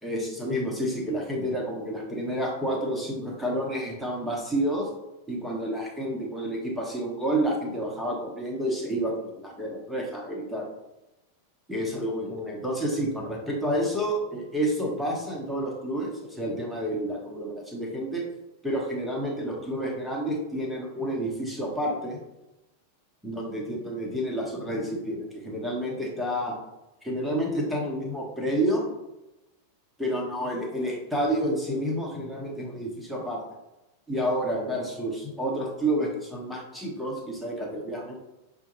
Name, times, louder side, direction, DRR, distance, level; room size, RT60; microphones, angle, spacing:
voice 1, 0.0-4.9 5.3-10.7 11.7-18.2 18.6-22.2 23.2-26.5 27.0-28.8 30.0-33.4 34.1-38.1, right 1 dB, ahead, -2 dB, 1.0 m, -29 dB
6.1 x 2.3 x 3.0 m, 0.98 s
figure-of-eight pair, 90°, 0 cm